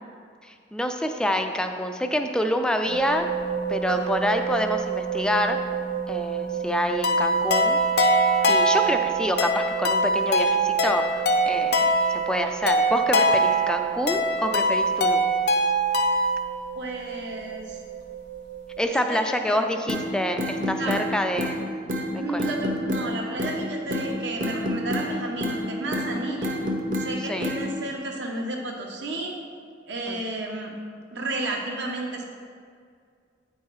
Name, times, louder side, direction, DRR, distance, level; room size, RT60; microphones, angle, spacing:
voice 1, 0.5-3.3 3.7-5.6 6.1-7.8 8.5-15.3 18.8-21.6 22.1-22.4 27.3-27.5 30.1-30.2, equal, 5° left, 5 dB, 0.3 m, -27 dB
sound 1, 2.9-18.9, right 8 dB, 90° right, 1.4 m, -33 dB
sound 2, 7.0-16.4, right 1 dB, 55° left, 0.6 m, -22 dB
voice 2, 16.7-17.8 19.1-19.6 20.8-21.0 22.2-26.5 27.0-29.3 29.9-30.7 31.1-32.2, right 2 dB, 70° right, 0 dB, 1.1 m, -32 dB
sound 3, 19.9-20.0 20.4-21.1 21.4-21.6 21.9-22.1 22.4-23.1 23.4-23.6 23.9-24.1 24.4-25.1 25.4-25.6 25.9-26.1 26.4-27.1 27.4-27.6, left 1 dB, 45° right, 0.9 m, -27 dB
8.9 x 4.6 x 4.7 m, 2.2 s
head